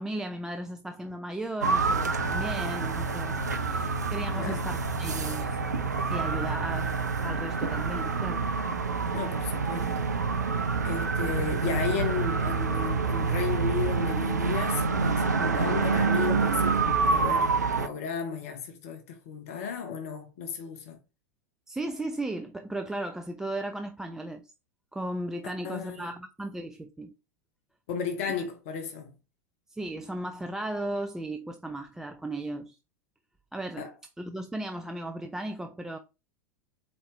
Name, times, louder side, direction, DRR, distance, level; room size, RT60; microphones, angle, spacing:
voice 1, 0.0-5.6 6.1-6.9 7.2-8.5 21.7-24.5 24.9-27.1 29.7-32.8 33.5-33.9 34.2-36.0, right 1 dB, 5° right, 0.3 m, -36 dB
sound 1, 1.6-17.9, right 4 dB, 75° right, 0.4 m, -27 dB
voice 2, 9.1-10.2 10.8-21.0 25.4-26.1 27.9-29.1 33.8-33.9, left 6 dB, 55° left, 1.0 m, -34 dB
4.3 x 3.2 x 3.2 m
figure-of-eight pair, 85°, 9 cm